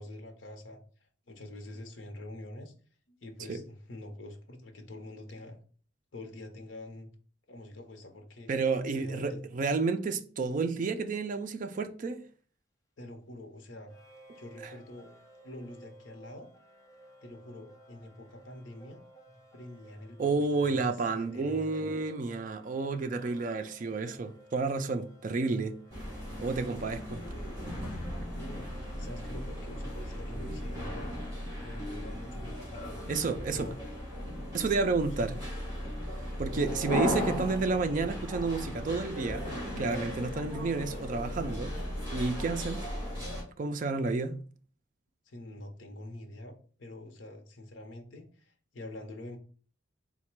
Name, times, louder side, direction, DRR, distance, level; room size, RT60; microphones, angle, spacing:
voice 1, 0.0-2.7 3.1-5.6 6.1-7.1 7.5-8.5 8.9-9.4 13.0-13.9 14.4-15.1 15.4-16.5 17.2-19.0 19.5-22.0 28.3-31.1 31.6-32.9 33.5-33.9 45.3-46.5 46.8-49.4, left 1 dB, 70° left, 0.8 m, -46 dB
voice 2, 8.5-12.2 20.2-25.8 26.4-27.2 33.1-33.7 34.5-35.4 36.2-41.7 42.1-42.9 43.6-44.4, right 4 dB, 40° right, 0.4 m, -31 dB
sound 1, 13.9-29.7, right 1 dB, 15° left, 0.6 m, -56 dB
sound 2, 25.9-43.4, equal, 20° right, 1.7 m, -36 dB
4.0 x 2.2 x 4.4 m
head